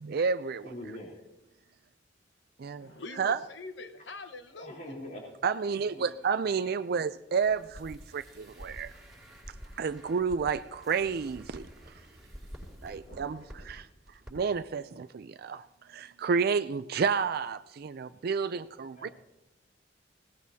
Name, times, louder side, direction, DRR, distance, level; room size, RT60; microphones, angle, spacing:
voice 1, 0.0-0.7 2.6-2.9 3.2-3.4 5.4-8.9 9.8-11.9 12.8-13.9 14.3-19.1, right 5 dB, 55° right, 0.4 m, -30 dB
voice 2, 0.6-1.2 4.5-5.5 5.9-6.1 13.1-13.5 18.4-18.6 18.9-19.1, left 1 dB, 50° left, 3.3 m, -44 dB
voice 3, 2.8-5.0, left 3 dB, 75° left, 1.2 m, -44 dB
sound 1, 7.4-13.7 14.1-14.3 14.6-14.7, equal, ahead, 5.9 m, -49 dB
20.5 x 18.0 x 2.8 m
head